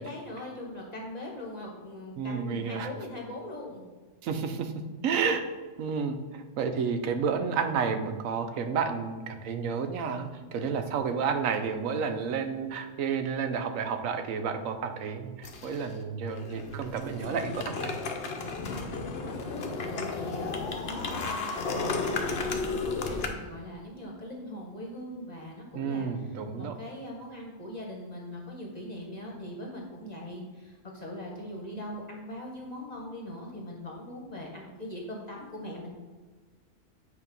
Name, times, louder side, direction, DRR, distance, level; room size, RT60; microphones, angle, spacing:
voice 1, 0.0-3.8 19.2-35.9, left 1 dB, 35° left, -2 dB, 1.1 m, -41 dB
voice 2, 2.2-2.9 4.2-4.7 5.0-5.4 5.8-18.0 25.7-26.7, right 6 dB, 90° right, 7 dB, 1.1 m, -31 dB
sound 1, 15.4-15.9 16.3-23.3, left 4 dB, 55° left, 0.9 m, -33 dB
8.4 x 2.8 x 5.3 m, 1.4 s
omnidirectional pair, 1.3 m